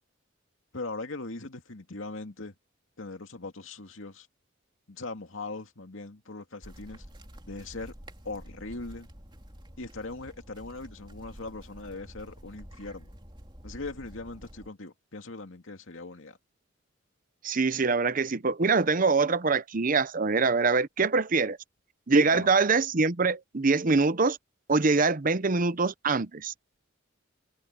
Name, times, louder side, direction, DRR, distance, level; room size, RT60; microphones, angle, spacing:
voice 1, 0.7-2.5 3.0-4.3 4.9-7.1 7.4-7.9 8.2-9.1 9.8-13.1 13.6-16.4 22.3-22.5, left 3 dB, 80° left, 2.3 m, -40 dB
sound 1, 6.6-14.7, equal, 25° right, 3.3 m, -48 dB
voice 2, 17.4-21.6 22.1-24.4 24.7-26.5, right 4 dB, 40° right, 0.8 m, -24 dB
head